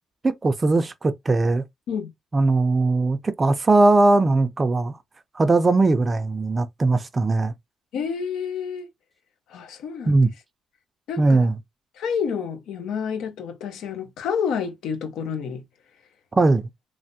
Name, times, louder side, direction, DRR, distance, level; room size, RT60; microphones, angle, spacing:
voice 1, 0.2-1.6 2.3-5.0 5.3-7.5 10.1-10.3 11.2-11.6 16.3-16.7, right 2 dB, 30° right, 0.4 m, -19 dB
voice 2, 7.9-8.9 9.5-10.2 11.1-11.4 12.0-15.6, left 6 dB, 85° left, 0.8 m, -29 dB
3.2 x 2.0 x 2.7 m
cardioid pair, 90°, 0 cm